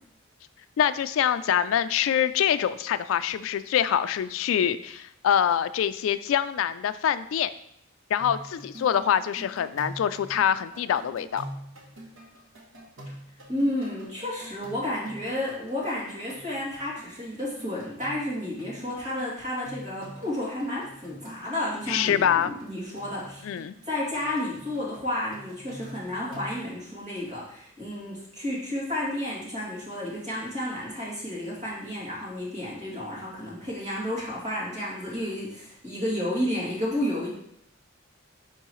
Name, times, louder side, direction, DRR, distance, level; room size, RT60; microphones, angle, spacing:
voice 1, 0.8-7.5 8.1-11.4 21.9-22.5 23.4-23.8, left 9 dB, 75° left, 12 dB, 0.3 m, -25 dB
sound 1, 8.2-26.6, equal, 70° right, 1.2 m, -46 dB
voice 2, 13.5-23.6 23.8-37.3, left 1 dB, 35° right, -6 dB, 2.4 m, -31 dB
10.0 x 3.8 x 3.1 m, 0.74 s
head